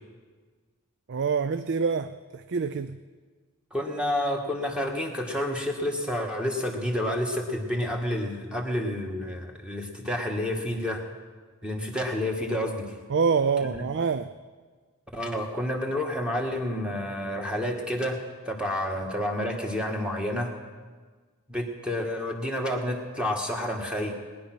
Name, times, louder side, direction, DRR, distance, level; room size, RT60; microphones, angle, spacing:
voice 1, 1.1-3.0 13.1-14.3, right 5 dB, 55° right, 0.4 m, -26 dB
voice 2, 3.7-11.0 11.6-13.0 13.6-13.7 15.1-18.2 18.5-20.5 21.5-24.2, left 1 dB, 5° right, 1.7 m, -29 dB
19.5 x 10.5 x 6.1 m
head